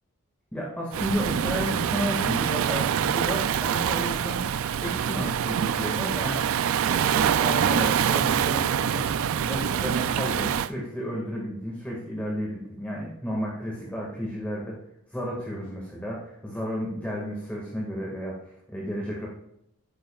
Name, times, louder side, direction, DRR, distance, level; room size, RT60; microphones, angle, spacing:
voice 1, 0.5-4.4 4.8-6.5 6.8-9.0 9.4-14.8 15.1-19.3, equal, 5° left, -3 dB, 1.8 m, -32 dB
Waves surf, 0.9-10.7, right 8 dB, 70° right, 0.3 m, -25 dB
12.5 x 9.5 x 2.3 m, 0.77 s
head